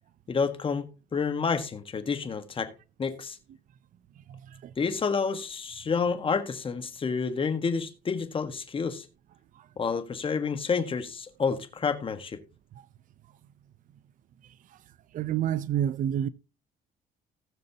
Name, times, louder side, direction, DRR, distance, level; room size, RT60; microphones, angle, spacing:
voice 1, 0.3-0.8 1.1-2.7 3.0-3.4 4.8-9.0 9.8-12.4, left 5 dB, 30° left, 1.5 m, -29 dB
voice 2, 4.3-4.7 9.6-9.7 12.8-12.9 15.1-16.3, right 10 dB, 50° right, 0.6 m, -29 dB
18.5 x 6.4 x 2.9 m
cardioid pair, 110°, 17 cm